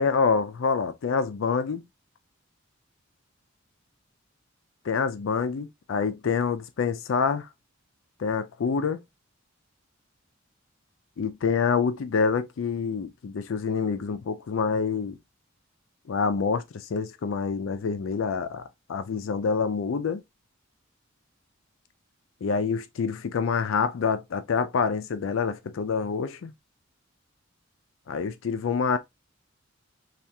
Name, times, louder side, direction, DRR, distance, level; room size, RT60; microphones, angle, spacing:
voice 1, 0.0-1.8 4.9-7.5 8.2-9.0 11.2-15.2 16.1-18.6 18.9-20.2 22.4-26.5 28.1-29.0, left 5 dB, 70° left, 0.4 m, -26 dB
3.4 x 2.4 x 2.7 m
head